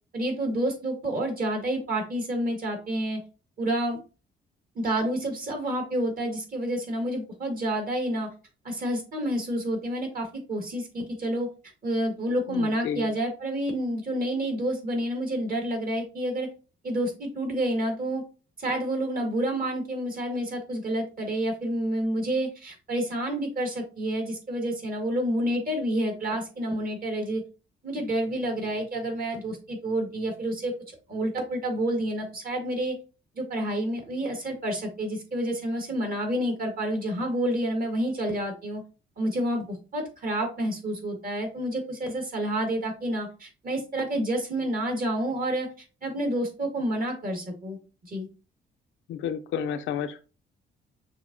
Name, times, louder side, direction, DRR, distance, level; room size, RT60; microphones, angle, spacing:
voice 1, 0.1-3.2 3.6-4.0 4.8-8.3 8.6-11.5 11.8-16.5 16.8-18.2 18.6-27.4 27.8-30.7 31.1-33.0 33.4-38.8 39.2-45.7 46.0-47.8 48.1-48.3, right 1 dB, 45° right, 3 dB, 1.8 m, -29 dB
voice 2, 12.5-13.1 49.1-50.2, left 8 dB, 80° left, 8 dB, 0.6 m, -31 dB
6.4 x 2.8 x 2.7 m, 0.33 s
cardioid pair, 90°, 20 cm